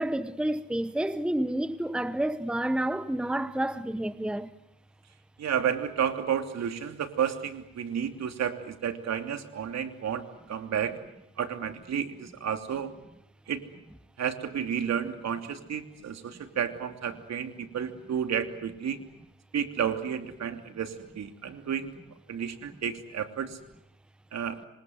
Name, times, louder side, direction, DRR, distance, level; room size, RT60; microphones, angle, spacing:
voice 1, 0.0-4.5, right 1 dB, 5° right, 1.0 m, -29 dB
voice 2, 5.4-11.0 11.4-12.9 13.5-13.6 14.2-19.0 19.5-21.9 22.3-23.6 24.3-24.6, right 8 dB, 60° right, 3.0 m, -31 dB
26.5 x 26.0 x 8.0 m
cardioid pair, 90°, 30 cm